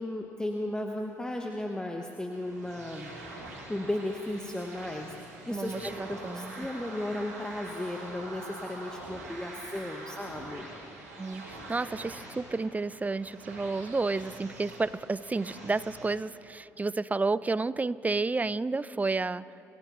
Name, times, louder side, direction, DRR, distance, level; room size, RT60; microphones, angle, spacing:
voice 1, 0.0-3.1 3.7-10.6, left 1 dB, 10° left, 2 dB, 1.1 m, -35 dB
sound 1, 2.3-16.1, right 2 dB, 90° right, 2.9 m, -45 dB
voice 2, 5.5-6.6 11.2-19.4, right 3 dB, 20° right, 18 dB, 0.4 m, -31 dB
26.5 x 15.5 x 3.1 m, 2.9 s
hypercardioid pair, 50°, 9 cm